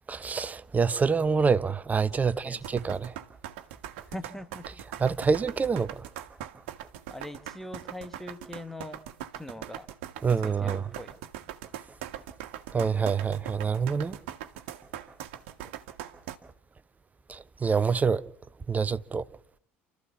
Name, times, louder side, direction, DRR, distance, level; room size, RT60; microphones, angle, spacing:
voice 1, 0.1-3.1 5.0-5.9 10.2-10.8 12.7-14.2 17.3-18.2 18.7-19.2, right 5 dB, 25° right, 0.9 m, -26 dB
voice 2, 2.2-2.7 4.1-4.7 7.1-9.0 9.4-9.9 10.4-11.1, left 1 dB, 5° left, 1.4 m, -42 dB
sound 1, 2.6-16.4, right 12 dB, 65° right, 1.5 m, -41 dB
29.0 x 13.5 x 7.2 m
hypercardioid pair, 65°, 6 cm